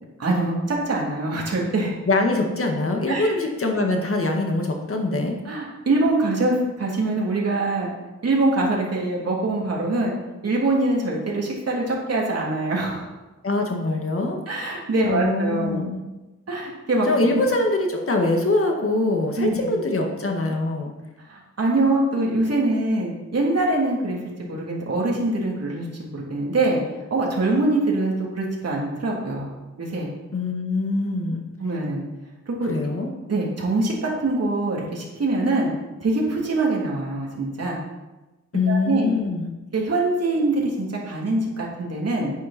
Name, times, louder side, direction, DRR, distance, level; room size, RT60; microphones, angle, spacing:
voice 1, 0.2-1.9 3.1-3.3 5.4-7.9 8.2-10.1 10.4-13.1 14.5-15.8 16.5-17.1 17.3-17.4 19.4-19.7 21.3-24.2 24.5-25.9 26.1-26.8 27.1-29.5 29.8-30.1 31.6-32.0 32.5-32.8 33.3-35.7 36.0-37.8 38.7-39.1 39.7-42.3, right 2 dB, 55° right, -3 dB, 3.3 m, -23 dB
voice 2, 2.1-5.3 13.4-14.4 15.1-16.0 17.1-20.9 30.3-31.5 32.6-33.1 38.5-39.5, left 2 dB, 50° left, 2 dB, 1.8 m, -23 dB
10.0 x 9.7 x 4.4 m, 1.1 s
wide cardioid pair, 110°, 29 cm